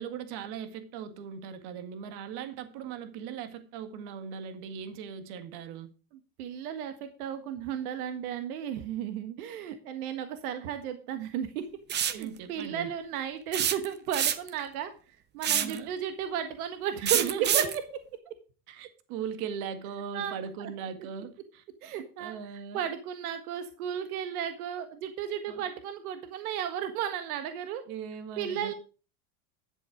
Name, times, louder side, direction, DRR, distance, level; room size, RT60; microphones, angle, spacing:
voice 1, 0.0-5.9 12.1-12.9 15.5-15.9 17.0-17.7 18.7-21.6 22.2-22.8 25.5-25.6 27.9-28.7, right 7 dB, 55° right, 1.9 m, -39 dB
voice 2, 6.4-11.7 12.0-14.9 15.3-17.8 20.1-20.4 21.8-22.3 22.7-27.8 28.4-28.7, right 9 dB, 80° right, 1.6 m, -34 dB
sound 1, 11.9-12.2 13.5-14.6 15.4-15.8 17.1-17.8, right 9 dB, 25° right, 0.8 m, -26 dB
11.0 x 7.5 x 5.0 m
supercardioid pair, 140°, 43 cm